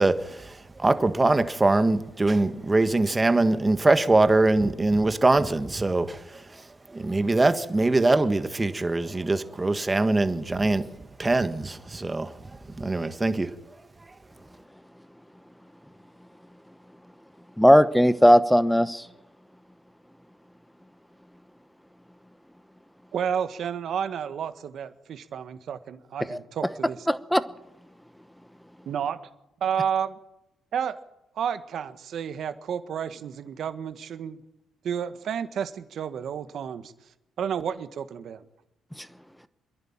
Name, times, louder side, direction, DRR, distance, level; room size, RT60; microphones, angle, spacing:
voice 1, 0.0-6.4 6.9-10.9 11.2-12.3 12.8-13.5, right 2 dB, 20° right, 10 dB, 1.6 m, -23 dB
voice 2, 17.6-19.0 26.3-26.4 27.1-27.4, equal, ahead, 14 dB, 1.0 m, -17 dB
voice 3, 23.1-27.1 28.9-29.2 29.6-30.2 30.7-31.0 31.4-34.4 34.8-36.9 37.4-38.4, right 8 dB, 65° right, 11 dB, 1.6 m, -31 dB
27.0 x 11.0 x 8.9 m, 0.87 s
cardioid pair, 90°, 0 cm